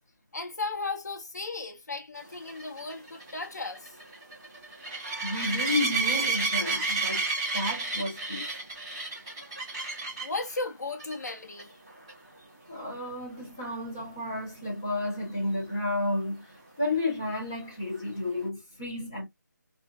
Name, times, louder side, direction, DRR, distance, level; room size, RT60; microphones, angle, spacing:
voice 1, 0.3-4.0 9.5-9.6 10.2-11.7, left 3 dB, 60° left, 1.0 m, -35 dB
sound 1, 2.5-10.4 11.0-11.3 11.6-11.7 12.1-12.2 15.7-15.8, right 3 dB, 15° right, 1.0 m, -31 dB
voice 2, 5.2-7.2 7.5-8.4 12.7-16.4 16.8-19.3, left 2 dB, 10° left, 0.7 m, -31 dB
3.1 x 2.3 x 2.3 m
figure-of-eight pair, 180°, 10 cm